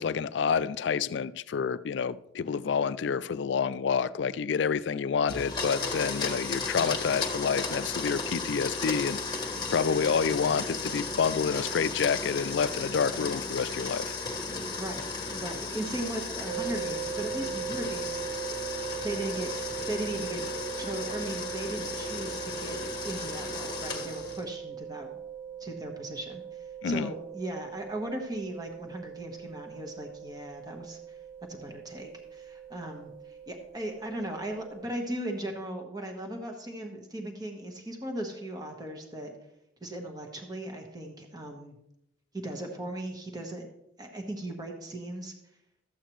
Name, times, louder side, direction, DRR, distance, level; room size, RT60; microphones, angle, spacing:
voice 1, 0.0-9.2 9.7-14.1 26.8-27.1, left 6 dB, 60° left, 0.3 m, -28 dB
Domestic sounds home sounds, 5.3-24.5, left 4 dB, 20° left, 1.4 m, -35 dB
voice 2, 14.7-18.2 19.0-19.5 19.9-20.4 20.8-25.1 25.6-31.2 31.5-39.3 39.8-41.7 42.3-43.6 44.0-45.3, right 1 dB, 20° right, 1.2 m, -37 dB
sound 1, 16.4-34.9, right 8 dB, 75° right, 4.6 m, -40 dB
13.0 x 8.3 x 3.1 m
head